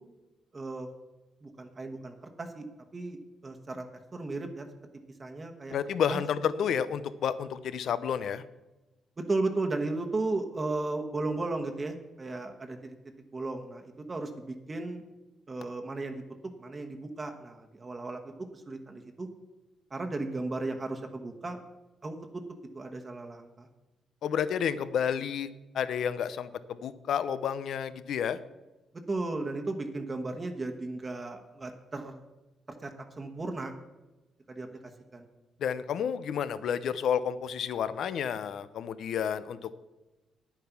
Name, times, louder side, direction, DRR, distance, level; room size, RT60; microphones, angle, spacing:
voice 1, 0.5-0.9 1.4-2.7 2.9-3.2 3.4-3.8 4.1-4.6 5.2-5.7 6.1-6.2 9.2-12.9 13.3-15.0 15.5-16.2 16.6-18.2 18.5-19.3 19.9-21.6 22.0-22.4 22.7-23.7 29.1-32.2 32.8-33.7 34.5-34.7 35.1-35.2, right 2 dB, 30° right, 4 dB, 1.2 m, -35 dB
voice 2, 5.7-8.4 24.2-25.5 25.7-28.4 35.6-39.8, left 8 dB, 70° left, 14 dB, 0.7 m, -30 dB
9.6 x 8.9 x 5.9 m, 1.1 s
cardioid pair, 90°, 0 cm